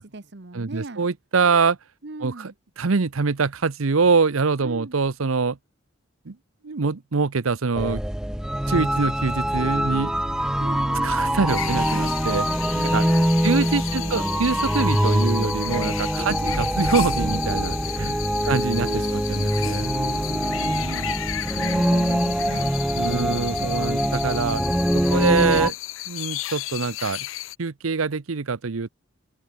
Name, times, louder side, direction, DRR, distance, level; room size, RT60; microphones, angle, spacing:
voice 1, 0.0-1.1 2.0-2.5 4.6-5.0 10.6-11.4 12.7-14.2 16.2-16.7 17.8-19.2 19.5-22.7 23.0-23.9 25.0-25.3, right 2 dB, 55° right, 1.1 m, -38 dB
voice 2, 0.5-1.8 2.2-2.5 2.8-5.6 6.3-6.4 6.6-8.0 8.7-10.1 11.0-12.5 12.8-13.1 13.4-18.2 18.5-19.9 22.9-24.6 24.9-25.7 26.1-27.3 27.6-28.9, right 4 dB, 90° right, 0.8 m, -24 dB
sound 1, 7.8-25.7, equal, 5° right, 0.4 m, -24 dB
sound 2, 11.5-27.5, left 15 dB, 75° left, 0.6 m, -34 dB
open air
head